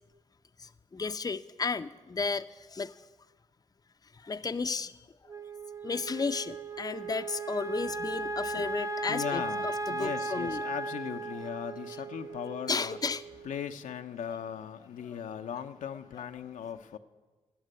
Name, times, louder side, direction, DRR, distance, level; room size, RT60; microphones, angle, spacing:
voice 1, 0.6-3.1 4.1-5.3 5.8-10.6 12.7-13.2, left 4 dB, 30° left, 10 dB, 0.6 m, -34 dB
Wind instrument woodwind instrument, 5.3-13.7, right 3 dB, 25° right, 0.6 m, -37 dB
voice 2, 9.1-13.0 13.4-17.0, left 8 dB, 75° left, 7 dB, 0.7 m, -38 dB
11.5 x 7.4 x 9.9 m, 1.2 s
supercardioid pair, 45°, 14 cm